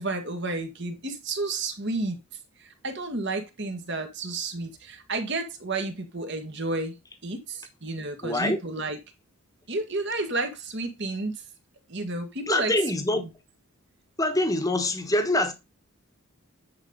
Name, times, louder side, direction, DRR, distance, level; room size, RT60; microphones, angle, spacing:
voice 1, 0.0-2.2 2.6-6.9 7.2-9.0 9.7-11.4 11.9-12.7 13.2-13.3, right 2 dB, 50° right, 1.7 m, -31 dB
voice 2, 8.2-8.6 12.5-13.2 14.2-15.5, left 1 dB, 15° left, 1.1 m, -24 dB
9.6 x 5.1 x 3.9 m
head